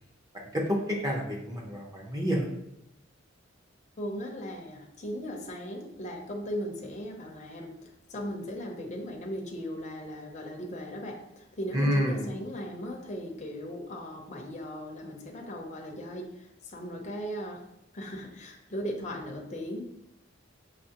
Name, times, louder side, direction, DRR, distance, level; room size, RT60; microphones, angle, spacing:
voice 1, 0.3-2.5 11.7-12.3, equal, 20° right, -1 dB, 0.7 m, -29 dB
voice 2, 4.0-17.6 17.9-19.8, equal, 40° left, 0 dB, 0.6 m, -38 dB
5.8 x 2.8 x 2.8 m, 0.81 s
head